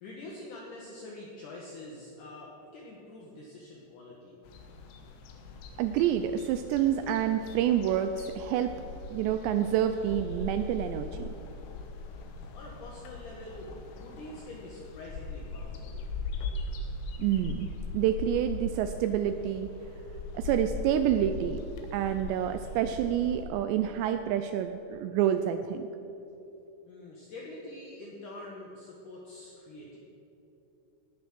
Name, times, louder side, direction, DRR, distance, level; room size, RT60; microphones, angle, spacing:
voice 1, 0.0-4.4 12.5-16.0 26.9-30.0, left 2 dB, 70° left, -2 dB, 2.0 m, -45 dB
sound 1, 4.4-23.5, left 3 dB, 85° left, 3.7 m, -40 dB
voice 2, 5.8-8.8 9.1-11.3 17.2-17.7 17.9-19.7 20.3-21.6 21.9-25.9, right 10 dB, 90° right, 8 dB, 2.5 m, -28 dB
19.0 x 7.3 x 6.1 m, 3.0 s
omnidirectional pair, 5.5 m